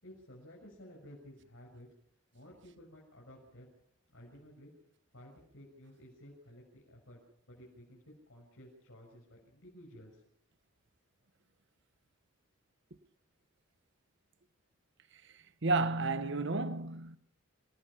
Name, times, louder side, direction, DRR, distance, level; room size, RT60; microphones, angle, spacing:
voice 1, 0.0-1.9 2.3-3.7 4.1-4.7 5.1-7.2 7.5-10.2, equal, 70° left, 6.7 m, -54 dB
voice 2, 15.2-17.2, right 3 dB, 60° right, 1.1 m, -32 dB
27.0 x 18.5 x 5.8 m
head